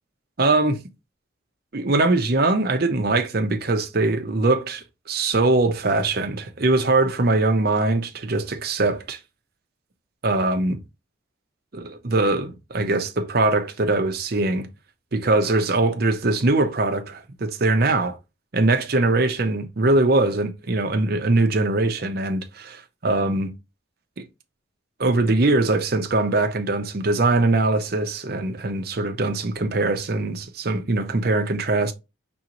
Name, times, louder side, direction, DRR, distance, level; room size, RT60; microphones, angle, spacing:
voice 1, 0.4-0.8 1.7-9.2 10.2-10.8 11.7-14.7 15.1-18.2 18.5-22.8 23.0-23.5 24.2-24.3 25.0-31.9, right 2 dB, 50° right, 0.7 m, -22 dB
5.0 x 3.5 x 3.0 m
head